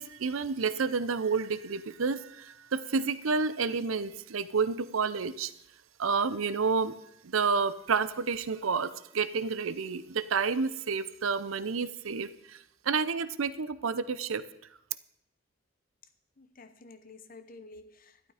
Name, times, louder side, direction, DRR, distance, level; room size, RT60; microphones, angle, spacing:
voice 1, 0.0-5.5 6.0-7.0 7.2-14.4, right 5 dB, 80° right, 14 dB, 0.6 m, -30 dB
voice 2, 16.4-18.3, left 3 dB, 45° left, 10 dB, 0.9 m, -51 dB
12.0 x 11.5 x 5.0 m, 0.78 s
head